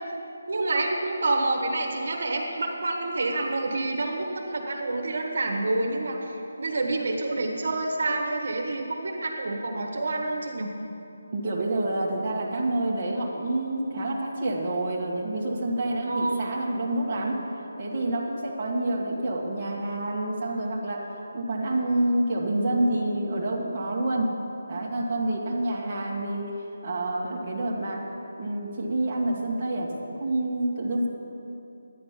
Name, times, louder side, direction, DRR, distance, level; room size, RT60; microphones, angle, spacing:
voice 1, 0.5-10.7 16.1-16.5, right 2 dB, 60° right, 1 dB, 1.6 m, -28 dB
voice 2, 11.3-17.4 17.8-21.1 21.3-24.3 24.7-26.5 26.8-28.0 28.4-31.1, right 1 dB, 25° right, -6 dB, 1.6 m, -28 dB
12.0 x 10.0 x 5.9 m, 2.8 s
hypercardioid pair, 170°, 0 cm